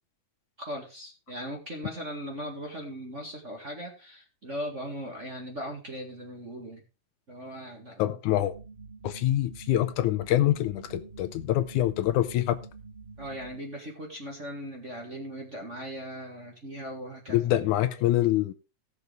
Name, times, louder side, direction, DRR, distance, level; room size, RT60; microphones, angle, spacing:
voice 1, 0.6-6.8 7.3-8.2 13.2-17.4, equal, 25° right, 1.7 m, -39 dB
voice 2, 8.0-8.5 9.0-12.6 17.3-18.5, left 13 dB, 80° left, 2.1 m, -25 dB
sound 1, 8.3-13.6, right 4 dB, 45° right, 0.7 m, -47 dB
17.0 x 6.7 x 3.4 m
omnidirectional pair, 3.6 m